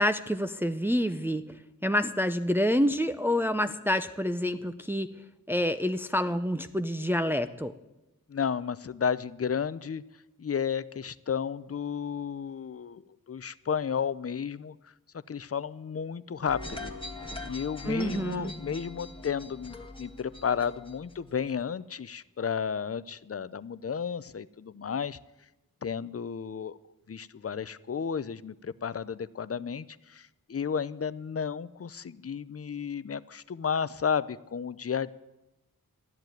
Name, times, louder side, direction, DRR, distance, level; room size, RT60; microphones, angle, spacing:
voice 1, 0.0-5.1 5.5-7.7 17.8-18.5, equal, 5° right, 9 dB, 0.6 m, -28 dB
voice 2, 8.3-10.0 10.4-13.0 13.3-14.8 15.3-16.9 17.4-25.2 25.8-26.8 27.1-35.1, left 7 dB, 40° left, 17 dB, 0.5 m, -32 dB
sound 1, 16.5-21.6, left 2 dB, 15° left, 1.6 m, -42 dB
13.5 x 10.5 x 9.1 m, 0.98 s
wide cardioid pair, 80°, 35 cm